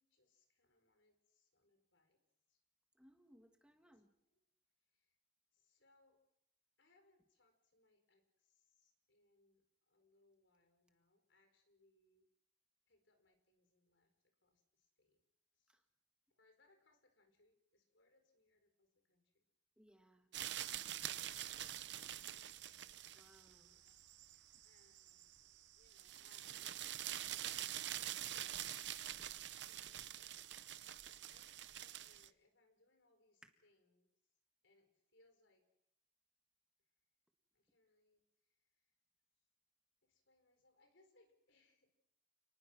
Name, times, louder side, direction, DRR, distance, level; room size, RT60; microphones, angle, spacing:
voice 1, 0.0-2.2 2.5-2.6 3.8-3.9 4.3-4.4 4.9-5.1 5.5-6.2 6.8-12.3 12.9-15.2 15.6-15.8 16.3-19.4 21.2-22.8 23.7-23.8 24.6-28.6 29.6-30.4 31.3-34.1 34.6-35.6 37.5-38.2 40.0-42.0, left 2 dB, 80° left, 7 dB, 4.5 m, -75 dB
voice 2, 2.9-4.1 15.7-15.8 19.8-21.5 23.0-23.8 24.3-24.4 29.2-29.3 33.4-33.5, equal, 5° right, 5 dB, 1.6 m, -68 dB
sound 1, 20.3-32.3, right 12 dB, 65° right, 0.8 m, -46 dB
28.5 x 20.0 x 6.2 m, 0.79 s
head